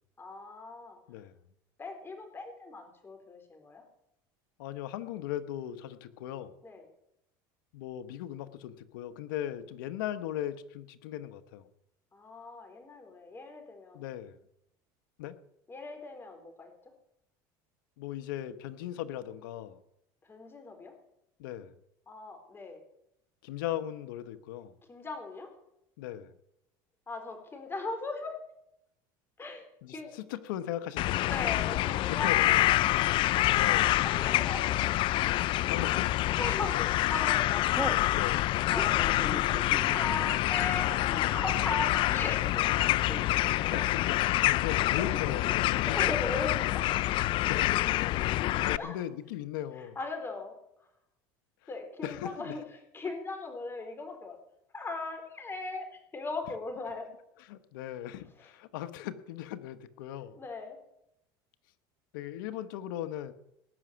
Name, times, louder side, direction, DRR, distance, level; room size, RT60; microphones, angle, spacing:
voice 1, 0.2-1.0 1.8-3.8 6.6-6.9 12.1-14.0 15.7-16.7 20.2-20.9 22.1-22.8 24.9-25.5 27.1-28.4 29.4-30.2 31.2-33.3 34.0-35.1 36.4-37.7 38.1-38.3 38.7-39.6 39.8-40.9 41.3-42.5 45.6-46.8 48.8-49.0 49.7-50.5 51.7-54.4 54.7-57.1 58.4-58.5 60.4-60.8, left 3 dB, 20° left, 5 dB, 4.1 m, -38 dB
voice 2, 4.6-6.5 7.7-11.6 13.9-14.4 15.2-15.3 18.0-19.8 21.4-21.7 23.4-24.7 26.0-26.3 29.8-31.3 32.1-32.4 33.5-34.0 35.7-36.4 36.8-36.9 38.1-38.5 41.0-41.1 42.9-43.0 43.4-46.0 47.5-50.0 52.0-52.5 57.5-60.4 62.1-63.3, left 12 dB, 85° left, 11 dB, 1.2 m, -38 dB
sound 1, 31.0-48.8, left 16 dB, 50° left, 0.4 m, -27 dB
Telephone, 35.5-36.1 36.6-36.9 37.2-38.1 38.6-44.1 44.4-45.5 45.8-46.2 46.5-46.6 46.9-47.5, right 1 dB, 5° right, 1.2 m, -42 dB
18.5 x 6.3 x 9.3 m, 0.81 s
supercardioid pair, 115°, 11 cm